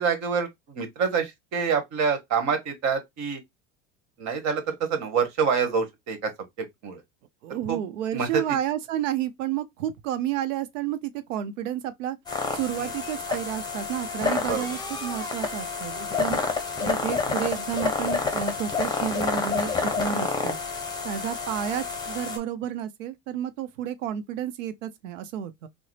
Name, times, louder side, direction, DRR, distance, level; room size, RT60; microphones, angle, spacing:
voice 1, 0.0-3.4 4.2-6.3 6.6-7.0 7.5-7.8 8.1-8.4 12.8-12.9 14.5-14.7 20.1-20.3, right 6 dB, 50° right, 1.3 m, -27 dB
voice 2, 7.4-12.2 12.5-16.4 16.8-20.6 21.0-25.7, right 10 dB, 85° right, 0.6 m, -31 dB
sound 1, 12.3-22.4, left 4 dB, 10° left, 0.9 m, -29 dB
3.7 x 2.0 x 3.2 m
supercardioid pair, 100°, 37 cm